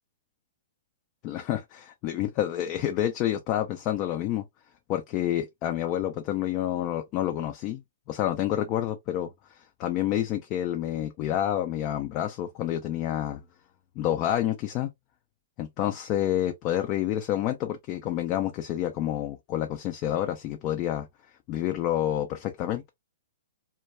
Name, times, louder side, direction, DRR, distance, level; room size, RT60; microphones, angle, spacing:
voice 1, 1.2-4.4 4.9-7.8 8.1-13.4 14.0-14.9 15.6-21.1 21.5-22.9, left 12 dB, 35° left, 0.4 m, -28 dB
2.2 x 2.2 x 2.9 m
hypercardioid pair, 130°, 0 cm